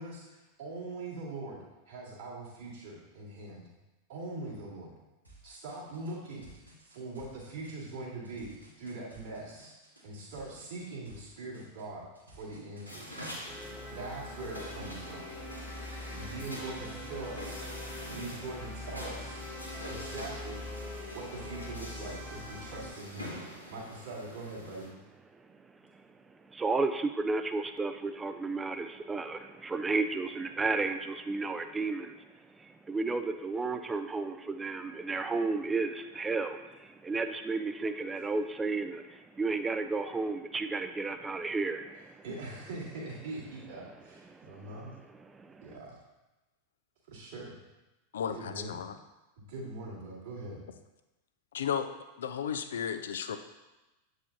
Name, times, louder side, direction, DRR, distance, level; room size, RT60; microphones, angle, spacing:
voice 1, 0.0-3.7 4.1-4.9 5.4-6.5 6.9-8.5 8.8-9.8 10.0-12.1 12.3-13.3 13.9-15.3 16.1-17.7 18.1-19.4 19.8-20.6 21.1-23.4 23.7-24.9 42.2-44.9 45.6-46.0 47.1-47.6 48.3-48.8 49.4-50.6, right 2 dB, 60° right, -9 dB, 2.2 m, -42 dB
sound 1, 5.2-12.9, right 1 dB, 85° right, 1.5 m, -56 dB
sound 2, 12.9-24.9, equal, 90° left, 1.6 m, -45 dB
sound 3, 13.5-22.9, left 1 dB, 10° left, 1.1 m, -43 dB
voice 2, 25.9-32.2 32.6-42.2 44.3-44.8 45.3-45.8, right 3 dB, 15° right, 9 dB, 0.4 m, -33 dB
voice 3, 48.1-48.9 51.5-51.9 52.2-53.4, left 8 dB, 65° left, 10 dB, 0.4 m, -34 dB
8.2 x 4.8 x 2.6 m, 1.1 s
figure-of-eight pair, 90°, 0 cm